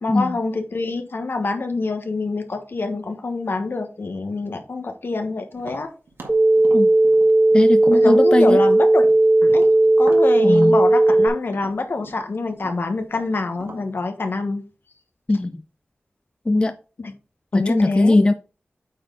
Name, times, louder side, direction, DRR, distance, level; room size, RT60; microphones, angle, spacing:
voice 1, 0.0-5.9 7.9-9.0 9.4-9.7 10.0-14.6 17.0-17.1 17.5-18.2, left 3 dB, 60° left, 7 dB, 1.2 m, -26 dB
Tap, 5.6-9.2 9.5-13.9, right 3 dB, 80° right, 1.8 m, -41 dB
sound 1, 6.3-11.3, right 2 dB, 30° right, 1.6 m, -15 dB
voice 2, 7.5-8.6 10.4-10.8 15.3-15.6 16.5-16.7 17.5-18.3, left 2 dB, 25° left, 9 dB, 0.4 m, -19 dB
8.6 x 4.5 x 3.8 m, 0.36 s
wide cardioid pair, 80°, 4 cm